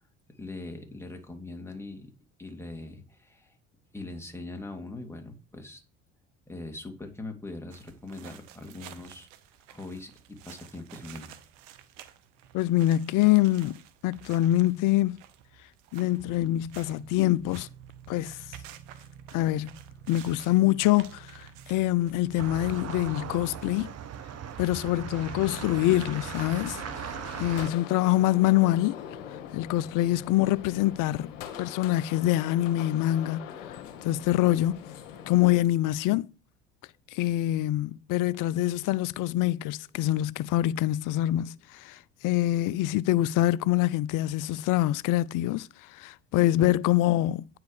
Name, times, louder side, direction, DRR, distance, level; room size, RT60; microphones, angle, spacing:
voice 1, 0.4-2.1 2.4-3.6 3.9-5.8 6.5-9.3 9.7-11.3, left 2 dB, 5° left, 2.4 m, -41 dB
sound 1, 7.7-27.6, right 10 dB, 80° right, 0.9 m, -50 dB
voice 2, 12.5-15.2 15.9-17.7 18.1-18.4 19.3-19.7 20.1-23.9 24.6-28.9 29.5-31.3 31.6-33.4 34.0-34.8 35.3-36.3 37.1-47.6, left 15 dB, 55° left, 0.6 m, -25 dB
sound 2, 22.4-27.7, right 8 dB, 40° right, 1.0 m, -38 dB
sound 3, 25.1-35.6, left 9 dB, 80° left, 1.3 m, -43 dB
9.3 x 4.8 x 4.9 m
hypercardioid pair, 65°, 37 cm